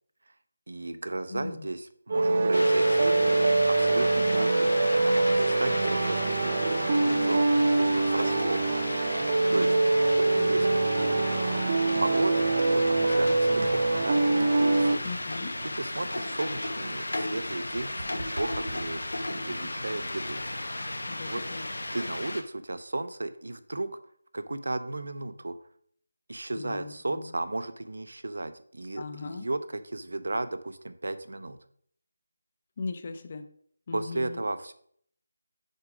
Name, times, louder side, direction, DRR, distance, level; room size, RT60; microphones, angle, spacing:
voice 1, 0.7-3.4 3.7-7.6 7.9-8.7 9.5-9.8 10.2-11.7 12.0-15.1 15.7-19.0 19.3-20.4 21.2-21.4 21.9-23.9 24.3-25.6 26.3-31.6 33.9-34.7, right 2 dB, 75° right, 11 dB, 0.6 m, -35 dB
voice 2, 1.3-1.7 6.7-7.4 10.4-10.5 15.0-15.5 19.5-19.6 21.1-21.7 26.6-27.3 29.0-29.5 32.8-33.5 33.9-34.4, left 4 dB, 30° left, 9 dB, 0.5 m, -39 dB
sound 1, 2.1-15.0, right 2 dB, 35° right, 0.7 m, -24 dB
sound 2, 2.5-22.4, left 1 dB, 90° left, 1.0 m, -34 dB
sound 3, 13.6-13.9 14.4-14.7 15.0-15.3 15.6-15.8 16.1-19.4, right 2 dB, 55° right, 1.2 m, -43 dB
6.5 x 4.9 x 4.9 m, 0.62 s
figure-of-eight pair, 170°, 0 cm